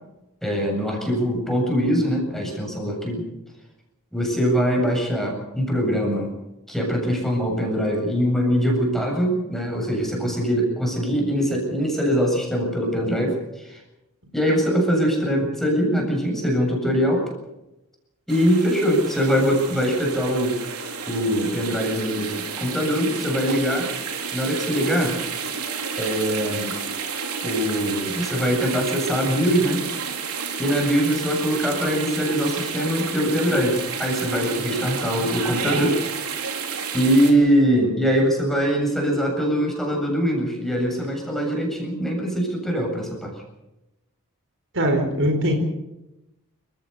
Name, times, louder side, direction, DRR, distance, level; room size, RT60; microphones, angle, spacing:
voice 1, 0.4-3.2 4.1-6.3 6.7-13.8 14.3-17.3 18.3-20.6 21.1-23.9 24.3-25.2 26.0-26.7 27.4-29.8 30.6-36.0 36.9-43.3, equal, ahead, 0 dB, 7.7 m, -22 dB
sound 1, 18.3-37.3, right 6 dB, 80° right, 4.0 m, -31 dB
voice 2, 44.7-45.5, equal, 60° right, 5 dB, 4.5 m, -21 dB
29.5 x 16.0 x 6.8 m, 0.95 s
head